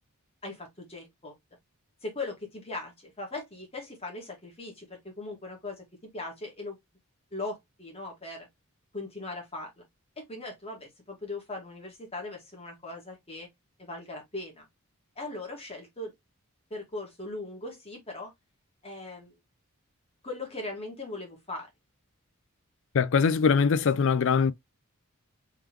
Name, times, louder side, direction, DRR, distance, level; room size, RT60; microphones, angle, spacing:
voice 1, 0.4-1.3 2.0-5.8 6.1-6.8 7.3-8.5 8.9-9.8 10.2-13.5 13.8-14.7 15.1-16.1 16.7-18.3 18.8-19.4 20.2-21.7, left 2 dB, 25° left, 1.7 m, -39 dB
voice 2, 22.9-24.5, left 5 dB, 60° left, 0.4 m, -22 dB
3.8 x 3.3 x 3.0 m
head